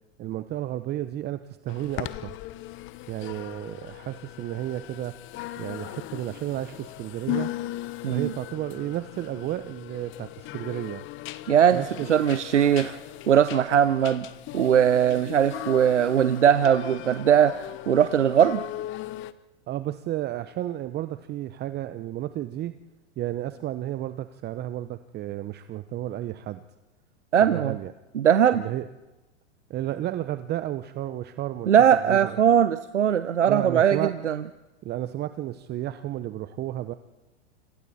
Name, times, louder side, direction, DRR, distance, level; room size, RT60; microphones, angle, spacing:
voice 1, 0.2-2.4 3.1-5.1 5.6-7.5 8.1-11.0 11.7-12.4 19.7-22.7 23.2-26.6 27.4-27.9 28.5-28.9 29.7-32.4 33.5-34.1 34.8-36.9, right 13 dB, 30° right, 12 dB, 0.9 m, -32 dB
sound 1, 1.7-19.3, left 15 dB, 35° left, 1.0 m, -38 dB
voice 2, 11.5-11.8 12.1-13.0 13.3-14.3 14.5-17.5 17.9-18.6 27.3-27.7 28.1-28.6 31.7-34.4, right 9 dB, 90° right, 12 dB, 0.9 m, -20 dB
29.0 x 27.0 x 4.3 m, 1.0 s
hypercardioid pair, 110°, 34 cm